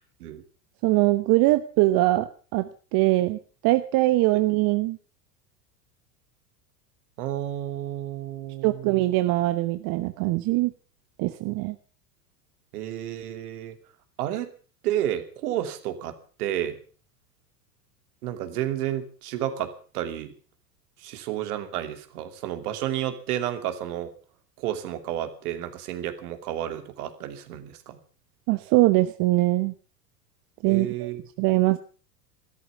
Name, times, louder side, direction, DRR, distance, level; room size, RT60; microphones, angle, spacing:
voice 1, 0.8-5.0 8.6-10.7 11.2-11.7 28.5-29.7 30.6-31.1 31.4-31.8, right 18 dB, 45° right, 10 dB, 1.1 m, -22 dB
voice 2, 7.2-9.0 12.7-13.8 14.2-14.5 14.8-16.8 18.2-20.3 21.0-24.1 24.6-28.0 30.7-31.2, right 12 dB, 65° right, 8 dB, 2.9 m, -31 dB
14.5 x 13.0 x 6.9 m, 0.40 s
hypercardioid pair, 90°, 48 cm